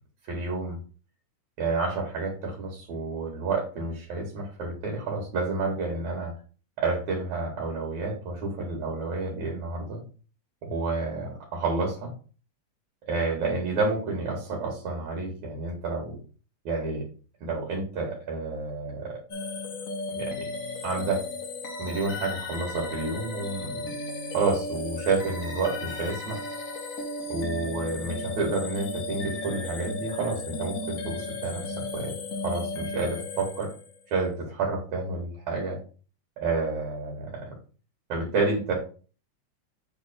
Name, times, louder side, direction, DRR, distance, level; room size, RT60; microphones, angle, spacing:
voice 1, 0.3-0.8 1.6-6.3 6.8-10.0 10.6-12.1 13.0-16.2 16.6-17.1 17.4-19.2 20.1-20.5 20.8-21.2 21.8-23.9 24.3-26.4 27.3-32.2 32.4-33.7 34.1-35.8 36.4-37.5 38.1-38.7, right 3 dB, 70° right, -1 dB, 3.1 m, -30 dB
sound 1, 19.3-34.1, left 3 dB, 80° left, 0.7 m, -35 dB
7.7 x 3.4 x 4.3 m, 0.37 s
omnidirectional pair, 3.5 m